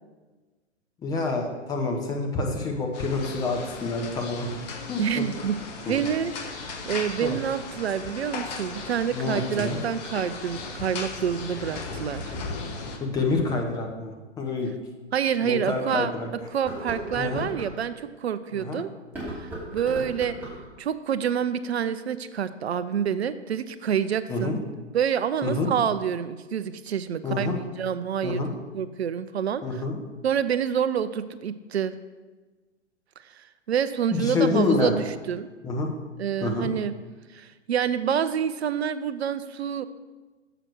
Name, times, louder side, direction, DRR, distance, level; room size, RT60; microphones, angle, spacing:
voice 1, 1.0-4.5 4.9-5.2 5.9-6.0 7.2-7.4 9.1-9.8 13.0-14.7 15.4-16.3 17.2-17.5 18.5-18.8 24.3-24.6 25.4-25.7 27.2-27.6 28.2-28.5 29.6-30.0 34.1-34.9 35.6-35.9 36.4-36.7, left 3 dB, 10° left, 1 dB, 0.8 m, -27 dB
sound 1, 2.9-13.0, left 3 dB, 35° left, 1.2 m, -37 dB
voice 2, 5.0-5.6 5.9-12.3 15.1-16.1 16.5-18.9 19.4-20.3 20.8-24.6 24.9-28.4 28.7-29.8 30.2-31.9 33.4-35.5 36.2-36.9 37.3-39.8, right 8 dB, 60° right, 13 dB, 0.6 m, -27 dB
sound 2, 14.6-14.7 15.2-15.3 16.5-17.7 19.0-20.7, right 1 dB, 5° right, 2.8 m, -37 dB
6.9 x 5.8 x 6.2 m, 1.3 s
figure-of-eight pair, 120°, 37 cm